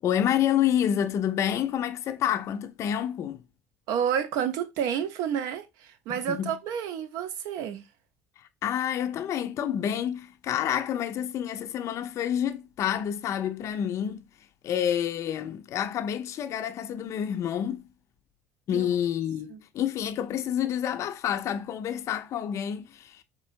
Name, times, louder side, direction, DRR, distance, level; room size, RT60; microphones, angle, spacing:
voice 1, 0.0-3.4 6.1-6.6 8.6-14.2 14.6-17.9 18.7-23.2, left 10 dB, 45° left, 0.5 m, -28 dB
voice 2, 3.9-7.8 18.7-18.9 19.5-19.6, right 8 dB, 55° right, 0.6 m, -30 dB
5.1 x 3.2 x 2.6 m
figure-of-eight pair, 60°, 7 cm